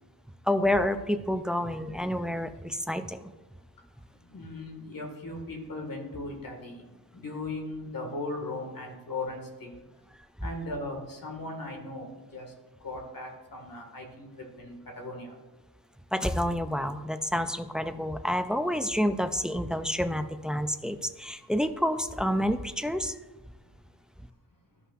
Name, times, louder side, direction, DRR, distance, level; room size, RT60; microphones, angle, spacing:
voice 1, 0.5-3.3 16.1-23.2, equal, ahead, 9 dB, 0.3 m, -28 dB
voice 2, 4.3-6.8 7.1-9.8 10.4-12.5 12.8-14.3 14.6-15.3, left 2 dB, 55° left, 1 dB, 1.9 m, -38 dB
13.0 x 5.4 x 2.5 m, 1.2 s
wide cardioid pair, 100°, 40 cm